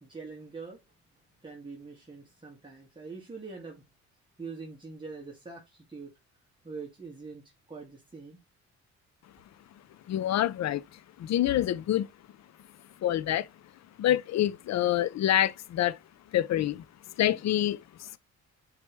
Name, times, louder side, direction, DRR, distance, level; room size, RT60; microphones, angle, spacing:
voice 1, 0.0-0.8 1.4-3.9 4.4-6.1 6.6-8.4, right 4 dB, 15° right, 2.1 m, -44 dB
voice 2, 10.1-12.1 13.0-13.5 14.0-16.0 16.3-16.8 17.2-18.2, left 12 dB, 60° left, 0.7 m, -27 dB
8.4 x 4.9 x 3.2 m
cardioid pair, 90°, 30 cm